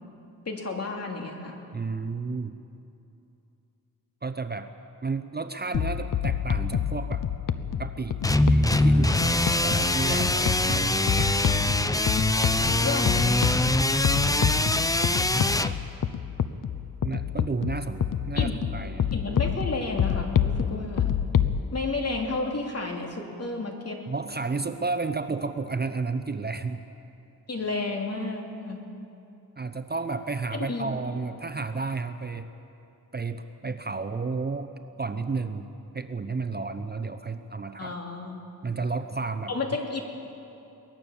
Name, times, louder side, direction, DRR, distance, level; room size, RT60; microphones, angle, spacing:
voice 1, 0.4-1.6 12.6-13.4 18.3-18.5 19.1-21.2 21.7-24.0 27.5-28.8 30.5-31.0 37.8-38.4 39.5-40.0, left 3 dB, 45° left, 1 dB, 3.0 m, -31 dB
voice 2, 1.7-2.5 4.2-4.7 5.0-7.3 7.8-8.2 8.5-11.4 14.1-14.9 15.6-15.8 17.0-19.1 24.1-26.8 29.6-32.5 33.1-34.7 35.0-35.7 35.9-38.0 38.6-39.5, right 4 dB, 25° right, 9 dB, 0.8 m, -32 dB
sound 1, 5.7-21.6, left 8 dB, 60° left, 0.8 m, -28 dB
sound 2, 8.2-15.7, left 1 dB, 10° left, 0.6 m, -23 dB
23.5 x 19.0 x 7.1 m, 2.8 s
wide cardioid pair, 100°, 36 cm